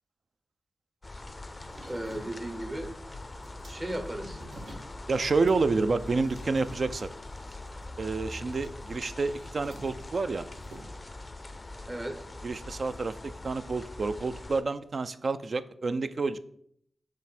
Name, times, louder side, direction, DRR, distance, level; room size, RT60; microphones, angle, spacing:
sound 1, 1.0-14.6, left 2 dB, 25° left, 0.4 m, -43 dB
sound 2, 1.5-10.8, right 1 dB, 80° right, 1.8 m, -52 dB
voice 1, 1.9-2.9 3.7-4.4 11.9-12.2, right 1 dB, 25° right, 5 dB, 1.0 m, -35 dB
voice 2, 5.1-7.1 8.0-10.5 12.4-16.4, right 3 dB, 55° right, 13 dB, 0.3 m, -29 dB
6.4 x 3.5 x 4.2 m, 0.68 s
cardioid pair, 75°, 0 cm